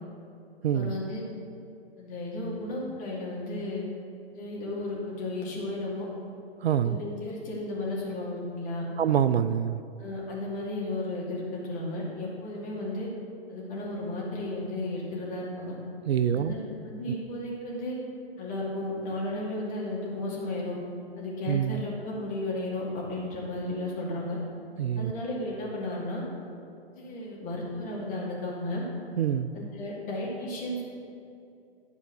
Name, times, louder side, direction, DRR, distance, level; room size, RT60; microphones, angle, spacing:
voice 1, 0.7-1.2 2.0-3.9 4.3-6.1 6.8-8.9 10.0-13.1 13.5-15.8 16.3-18.0 18.4-20.8 21.2-24.4 25.0-26.2 26.9-28.9 29.5-30.8, left 1 dB, 25° left, -5 dB, 2.6 m, -34 dB
voice 2, 6.6-7.0 9.0-9.8 16.1-16.6 17.1-17.2 21.5-21.8 24.8-25.1 29.2-29.5, right 9 dB, 75° right, 13 dB, 0.5 m, -25 dB
11.0 x 4.6 x 6.8 m, 2.6 s
figure-of-eight pair, 120°, 32 cm